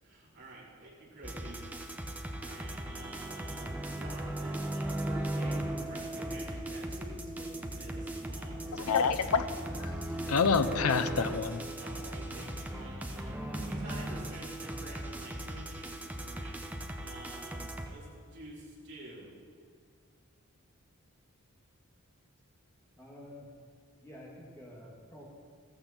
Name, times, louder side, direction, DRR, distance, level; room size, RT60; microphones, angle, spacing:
voice 1, 0.0-1.6 2.2-9.4 11.8-19.3, right 1 dB, 50° right, 4.3 m, -50 dB
sound 1, 1.2-17.9, right 1 dB, 5° right, 0.8 m, -37 dB
voice 2, 8.7-11.6, left 5 dB, 80° left, 0.7 m, -28 dB
voice 3, 23.0-23.4 24.0-25.2, left 1 dB, 10° left, 2.4 m, -49 dB
15.0 x 14.5 x 4.4 m
head